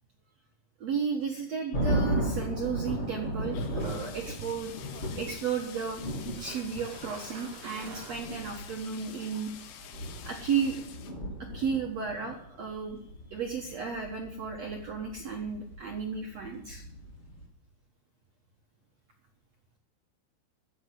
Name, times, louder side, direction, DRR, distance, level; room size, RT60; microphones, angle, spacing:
voice 1, 0.8-4.7 5.2-6.0 6.4-9.5 10.2-10.8 11.5-13.0 13.3-16.8, right 6 dB, 80° right, 2 dB, 1.5 m, -33 dB
sound 1, 1.2-1.4 1.8-2.1 3.5-11.1, left 9 dB, 70° left, 3.2 m, -48 dB
sound 2, 1.7-17.4, right 1 dB, 20° left, 1.9 m, -36 dB
sound 3, 3.0-8.8, right 6 dB, 60° right, 2.5 m, -50 dB
14.5 x 7.3 x 9.5 m, 0.70 s
omnidirectional pair, 5.4 m